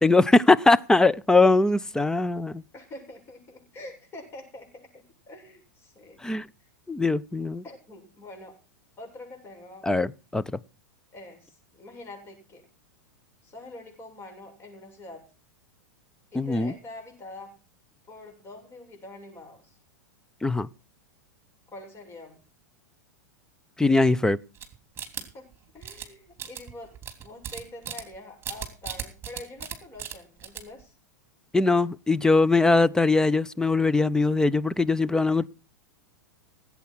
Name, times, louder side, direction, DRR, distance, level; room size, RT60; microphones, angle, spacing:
voice 1, 0.0-2.6 6.2-6.5 6.9-7.6 9.8-10.4 16.3-16.7 20.4-20.7 23.8-24.4 31.5-35.5, left 3 dB, 5° left, 0.6 m, -21 dB
voice 2, 2.7-6.2 7.6-8.6 9.0-9.9 11.1-12.7 13.4-15.3 16.3-17.6 18.1-19.8 21.7-22.4 25.2-30.9, left 2 dB, 25° left, 7.5 m, -45 dB
sound 1, 24.6-25.5 25.8-26.0 26.4-28.2 28.4-29.7 30.0-30.1 30.4-30.8, right 9 dB, 25° right, 3.1 m, -36 dB
17.0 x 8.5 x 6.1 m
hypercardioid pair, 100°, 10 cm